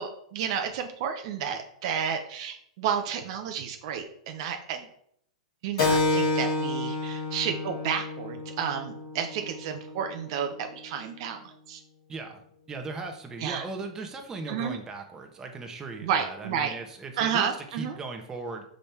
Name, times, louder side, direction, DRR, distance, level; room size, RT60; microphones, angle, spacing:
voice 1, 0.0-4.9 5.6-11.4 11.7-11.8 13.4-13.6 14.5-14.8 16.0-16.7 17.2-18.0, right 7 dB, 55° right, 5 dB, 0.8 m, -31 dB
Keyboard (musical), 5.8-10.9, left 2 dB, 65° left, 1.6 m, -30 dB
voice 2, 12.1-12.4 12.7-18.6, right 3 dB, 20° right, 3 dB, 1.2 m, -38 dB
5.4 x 5.2 x 4.5 m, 0.67 s
hypercardioid pair, 115°, 3 cm